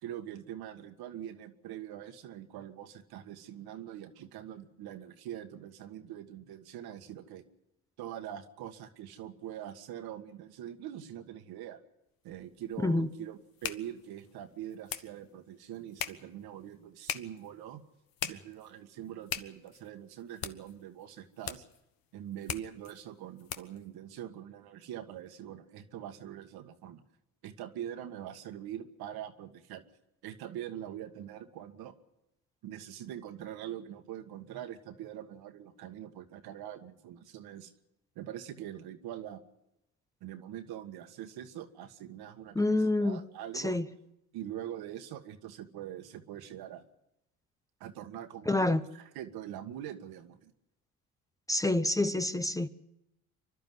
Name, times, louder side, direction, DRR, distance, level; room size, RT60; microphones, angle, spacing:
voice 1, 0.0-7.4 8.0-11.8 12.2-17.8 18.2-21.6 22.1-27.0 27.4-29.8 30.2-31.9 32.6-37.7 38.1-39.4 40.2-43.8 44.3-46.8 47.8-50.5, right 11 dB, 75° right, 1.7 m, -43 dB
sound 1, 12.3-23.9, left 10 dB, 65° left, 1.2 m, -43 dB
voice 2, 42.5-43.2 43.5-43.9 48.5-48.8 51.5-52.7, left 2 dB, 10° left, 0.8 m, -27 dB
25.5 x 12.0 x 9.5 m
supercardioid pair, 80°, 38 cm